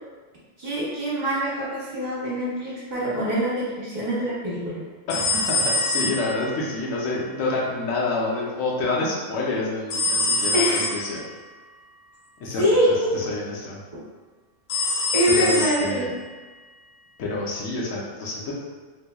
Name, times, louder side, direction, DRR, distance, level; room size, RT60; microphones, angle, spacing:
voice 1, 0.6-4.8 10.5-10.9 12.6-13.1 15.1-16.1, equal, 40° right, -8 dB, 0.8 m, -24 dB
voice 2, 5.1-11.2 12.4-13.8 15.3-16.1 17.2-18.5, left 2 dB, 85° left, -4 dB, 1.1 m, -28 dB
sound 1, 5.1-6.7 9.9-11.2 14.7-16.1, left 3 dB, 65° left, 0.7 m, -25 dB
3.5 x 3.0 x 2.2 m, 1.4 s
omnidirectional pair, 1.3 m